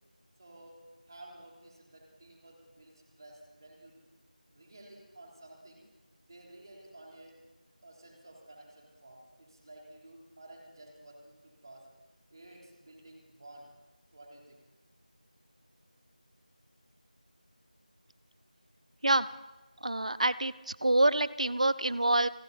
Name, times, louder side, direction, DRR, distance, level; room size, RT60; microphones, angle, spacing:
voice 1, 0.4-0.8 1.1-4.1 4.5-5.8 6.2-7.4 7.8-11.9 12.3-13.7 14.1-14.6, right 1 dB, 30° right, -1 dB, 3.6 m, -53 dB
voice 2, 19.8-22.3, right 2 dB, 50° right, 17 dB, 0.7 m, -26 dB
28.5 x 10.5 x 4.1 m, 1.1 s
figure-of-eight pair, 175°, 5 cm